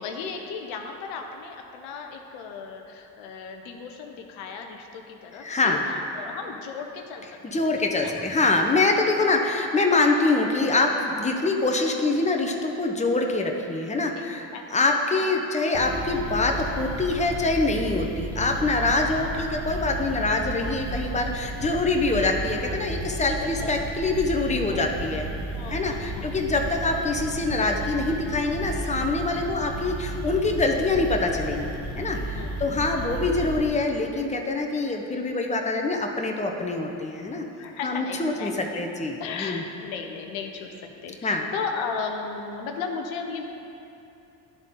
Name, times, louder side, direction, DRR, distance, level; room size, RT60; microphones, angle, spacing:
voice 1, 0.0-5.8 6.1-7.2 7.5-7.7 8.0-8.2 11.4-11.5 14.2-14.6 15.2-15.3 20.6-21.1 21.6-21.8 23.4-23.7 24.7-24.8 25.5-26.3 32.3-33.1 37.6-38.8 39.2-40.7 41.0-43.5, left 5 dB, 85° left, 4 dB, 0.7 m, -36 dB
voice 2, 5.4-5.8 7.4-25.3 25.7-37.5 37.8-39.6 41.2-41.5, left 3 dB, 15° left, 2 dB, 0.8 m, -25 dB
sound 1, 15.7-33.7, right 1 dB, 75° right, 1.4 m, -33 dB
11.0 x 3.8 x 3.8 m, 2.8 s
supercardioid pair, 60°, 47 cm